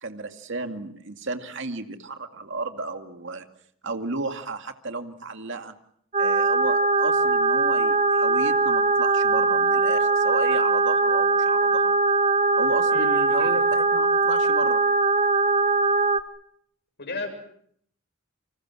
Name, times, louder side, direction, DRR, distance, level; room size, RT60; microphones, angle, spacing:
voice 1, 0.0-3.5 3.8-5.7 6.2-11.9 12.6-14.8, right 3 dB, 65° right, 6 dB, 2.3 m, -33 dB
sound 1, 6.1-16.2, right 3 dB, 40° right, 1.9 m, -21 dB
voice 2, 12.9-13.7 17.0-17.3, left 3 dB, 55° left, 5 dB, 7.5 m, -34 dB
29.0 x 26.5 x 6.2 m, 0.66 s
head